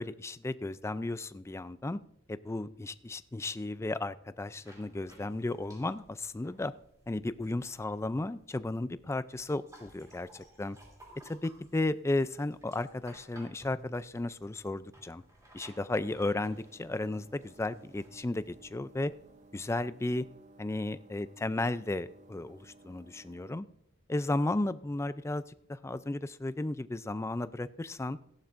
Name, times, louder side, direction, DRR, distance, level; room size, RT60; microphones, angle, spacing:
voice 1, 0.0-2.0 2.3-6.7 7.1-10.8 11.2-15.2 15.5-19.1 19.5-20.3 20.6-23.7 24.1-28.2, left 2 dB, 10° left, 0.3 m, -34 dB
sound 1, 4.6-20.3, right 1 dB, 15° right, 2.9 m, -58 dB
sound 2, 16.4-23.6, right 2 dB, 35° right, 0.7 m, -58 dB
16.0 x 11.5 x 2.5 m
head